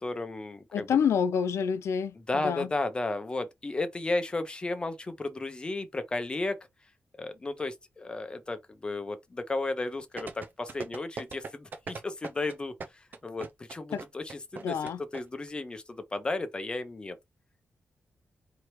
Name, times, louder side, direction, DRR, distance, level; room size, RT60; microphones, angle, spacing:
voice 1, 0.0-0.9 2.2-6.6 7.2-12.7 13.2-14.8 15.1-17.2, left 2 dB, 20° left, 0.8 m, -34 dB
voice 2, 0.7-2.7 13.9-14.0 14.6-15.0, left 7 dB, 85° left, 0.5 m, -28 dB
sound 1, 10.2-15.2 15.5-15.6, right 4 dB, 40° right, 0.6 m, -39 dB
4.6 x 2.8 x 3.1 m
wide cardioid pair, 170°, 5 cm